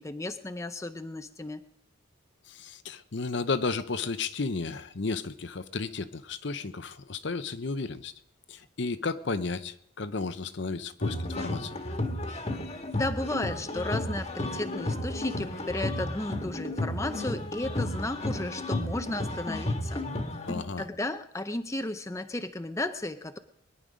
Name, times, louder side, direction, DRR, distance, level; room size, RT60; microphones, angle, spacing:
voice 1, 0.0-1.6 12.9-20.0 20.8-23.4, left 2 dB, 15° left, 9 dB, 0.6 m, -34 dB
voice 2, 2.5-8.1 8.5-11.8 20.5-20.8, left 4 dB, 60° left, 12 dB, 0.7 m, -33 dB
sound 1, 11.0-20.6, left 1 dB, 30° left, 1.4 m, -33 dB
22.0 x 11.0 x 5.1 m, 0.71 s
head